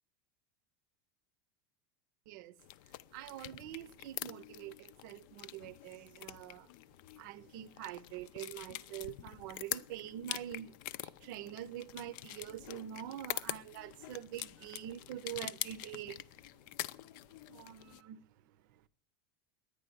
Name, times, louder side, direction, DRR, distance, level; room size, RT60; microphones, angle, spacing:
sound 1, 2.6-18.0, left 14 dB, 60° left, 0.5 m, -45 dB
voice 1, 3.1-6.7 7.2-10.7 11.0-16.2 17.5-18.3, right 12 dB, 65° right, 0.7 m, -45 dB
10.0 x 9.9 x 9.9 m
supercardioid pair, 160°, 11 cm